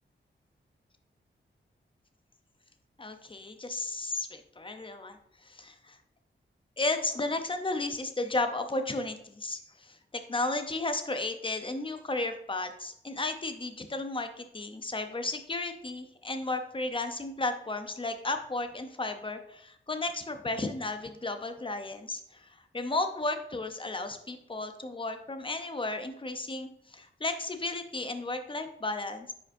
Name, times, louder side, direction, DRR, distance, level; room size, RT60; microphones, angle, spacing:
voice 1, 3.0-5.2 5.4-6.0 6.8-29.3, left 2 dB, 25° left, 7 dB, 0.7 m, -34 dB
9.7 x 5.0 x 2.7 m, 0.71 s
wide cardioid pair, 110°, 20 cm